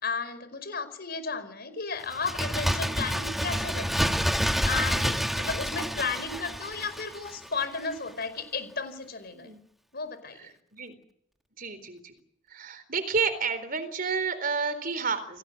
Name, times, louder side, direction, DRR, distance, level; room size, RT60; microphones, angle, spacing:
voice 1, 0.0-9.5 9.9-10.5, left 4 dB, 55° left, 13 dB, 4.9 m, -34 dB
Bird, 2.1-7.6 7.9-8.0, equal, ahead, 1.8 m, -28 dB
voice 2, 11.6-12.2 12.5-15.4, right 5 dB, 50° right, 12 dB, 4.0 m, -30 dB
29.5 x 18.0 x 7.8 m, 0.73 s
head